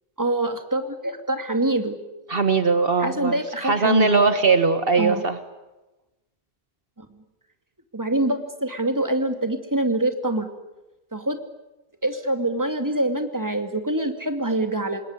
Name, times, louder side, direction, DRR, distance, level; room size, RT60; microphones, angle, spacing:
voice 1, 0.2-2.0 3.0-4.1 5.0-5.2 7.0-7.1 7.9-10.5 11.1-11.4 12.0-15.0, right 1 dB, 15° right, 7 dB, 2.4 m, -25 dB
voice 2, 2.3-5.4, right 4 dB, 60° right, 9 dB, 1.6 m, -20 dB
27.0 x 21.0 x 9.7 m, 1.0 s
omnidirectional pair, 1.1 m